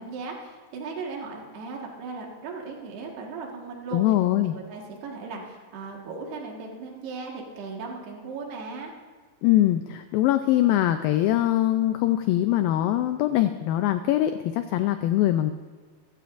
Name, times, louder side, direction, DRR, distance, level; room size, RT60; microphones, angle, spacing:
voice 1, 0.0-4.0 4.4-8.9, right 4 dB, 75° right, 0 dB, 3.7 m, -37 dB
voice 2, 3.9-4.6 9.4-15.5, left 13 dB, 90° left, 8 dB, 2.0 m, -22 dB
23.0 x 14.5 x 2.6 m, 1.4 s
omnidirectional pair, 4.7 m